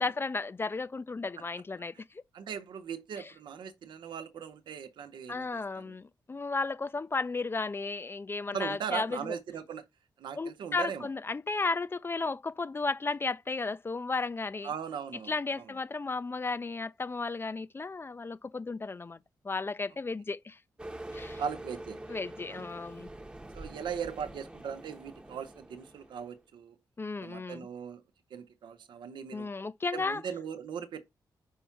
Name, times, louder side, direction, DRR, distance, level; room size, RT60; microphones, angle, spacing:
voice 1, 0.0-1.9 3.2-3.3 5.3-9.3 10.4-14.7 15.3-19.2 19.4-20.6 21.1-21.4 22.1-23.1 27.0-27.7 29.3-30.2, left 3 dB, 30° left, 0.5 m, -34 dB
voice 2, 2.3-5.9 8.5-9.8 10.2-11.1 14.6-15.7 21.4-22.0 22.4-22.8 23.5-26.7 27.2-28.0 28.3-29.5 29.9-31.0, right 7 dB, 80° right, 0.9 m, -39 dB
sound 1, 20.8-26.4, right 1 dB, 15° right, 0.9 m, -45 dB
5.5 x 4.5 x 5.7 m
cardioid pair, 70°, 8 cm